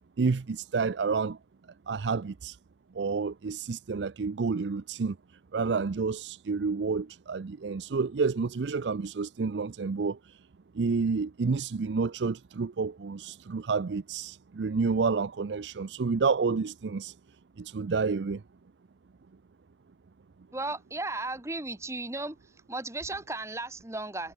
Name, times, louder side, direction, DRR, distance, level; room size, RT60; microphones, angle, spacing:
voice 1, 0.2-1.4 1.9-2.6 2.9-5.2 5.5-10.2 10.7-17.1 17.6-18.4, right 4 dB, 90° right, 0.5 m, -29 dB
voice 2, 20.5-22.4 22.7-24.3, right 2 dB, 15° right, 1.3 m, -35 dB
head